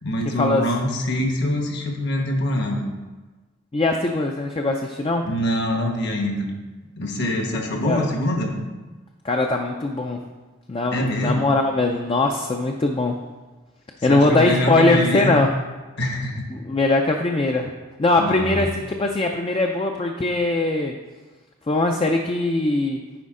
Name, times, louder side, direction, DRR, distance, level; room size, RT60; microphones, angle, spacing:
voice 1, 0.0-2.8 5.2-6.5 7.0-8.5 10.9-11.5 14.0-15.5 16.0-16.5 18.2-18.7, left 1 dB, 55° left, 2 dB, 1.1 m, -24 dB
voice 2, 3.7-5.3 7.8-8.1 9.2-10.2 10.7-13.2 14.0-15.5 16.5-17.7 18.0-21.0 21.7-23.0, left 2 dB, 25° left, 3 dB, 0.4 m, -21 dB
9.4 x 5.0 x 3.7 m, 1.2 s
head